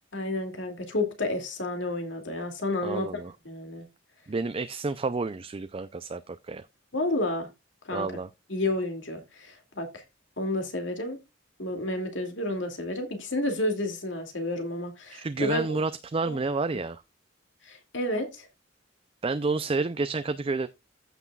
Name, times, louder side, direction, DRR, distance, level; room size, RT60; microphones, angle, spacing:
voice 1, 0.1-3.1 3.4-3.8 6.9-7.5 7.9-8.1 8.5-10.0 10.4-11.2 11.6-15.7 16.2-16.4 17.7-18.5, left 1 dB, 70° left, 2.4 m, -30 dB
voice 2, 2.8-3.3 4.3-6.7 7.9-8.3 15.1-17.0 19.2-20.7, right 3 dB, 30° right, 0.4 m, -30 dB
14.5 x 6.1 x 2.3 m
head